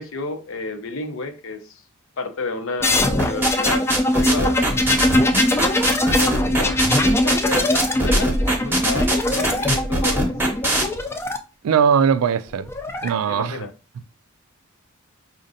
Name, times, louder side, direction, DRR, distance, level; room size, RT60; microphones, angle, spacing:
voice 1, 0.0-1.8 2.2-3.8 4.2-4.6 5.3-5.5 6.2-6.9 7.1-8.4 8.6-10.3 13.3-13.7, left 3 dB, 65° left, 0.6 m, -31 dB
sound 1, 2.8-11.4 12.5-13.1, left 1 dB, 10° left, 0.3 m, -21 dB
sound 2, 3.2-10.8, right 1 dB, 10° right, 0.8 m, -22 dB
voice 2, 11.6-12.7 13.0-13.6, right 7 dB, 80° right, 0.3 m, -19 dB
5.1 x 2.5 x 2.6 m
head